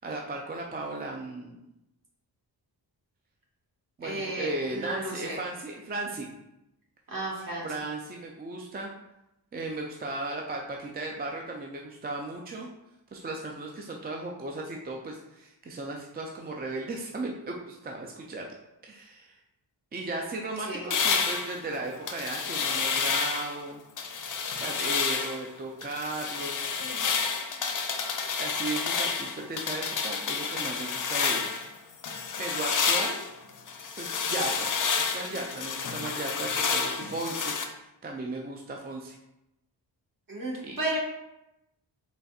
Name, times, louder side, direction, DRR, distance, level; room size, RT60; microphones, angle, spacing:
voice 1, 0.0-1.6 4.0-6.3 7.6-8.9 9.5-12.7 13.1-18.5 18.8-19.4 19.9-23.8 24.6-26.7 28.4-31.6 32.4-33.2 34.0-34.7 35.1-37.5 38.0-39.2 40.6-40.8, right 2 dB, 25° right, 0 dB, 0.4 m, -36 dB
voice 2, 4.0-5.4 7.1-7.7 20.6-20.9 40.3-41.0, right 1 dB, 45° right, -3 dB, 1.5 m, -33 dB
sound 1, 20.9-23.6 24.0-25.4 25.8-31.7 32.0-37.7, left 5 dB, 45° left, 0.5 m, -29 dB
4.3 x 3.9 x 2.4 m, 0.90 s
wide cardioid pair, 120°, 44 cm